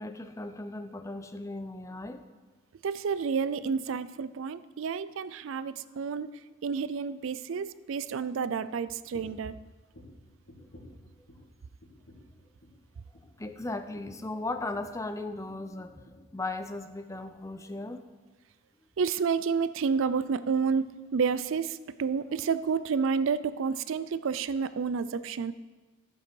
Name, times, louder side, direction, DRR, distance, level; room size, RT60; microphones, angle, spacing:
voice 1, 0.0-2.2 13.4-18.0, left 2 dB, 15° left, 9 dB, 0.5 m, -37 dB
voice 2, 2.8-6.3 6.6-9.6 19.0-25.5, right 5 dB, 70° right, 15 dB, 0.4 m, -30 dB
sound 1, 9.1-9.5 9.9-11.5 11.8-12.3 12.6-12.9 13.1-15.5 15.8-16.3 16.6-16.8 17.1-17.3, left 1 dB, 70° left, 2.9 m, -53 dB
12.0 x 7.9 x 4.6 m, 1.2 s
head